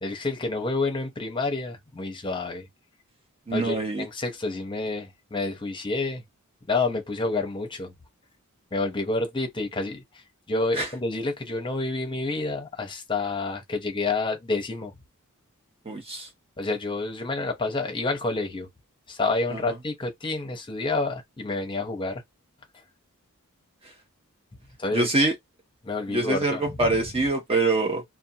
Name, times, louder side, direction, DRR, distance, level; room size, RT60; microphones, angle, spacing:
voice 1, 0.0-2.7 3.5-6.2 6.7-7.9 8.7-14.9 16.6-18.7 19.1-22.2 24.8-25.1 25.8-27.0, left 3 dB, 20° left, 0.7 m, -29 dB
voice 2, 3.5-4.1 10.8-10.9 15.9-16.3 24.9-25.3 26.1-28.0, right 2 dB, 25° right, 0.7 m, -24 dB
2.6 x 2.2 x 2.7 m
head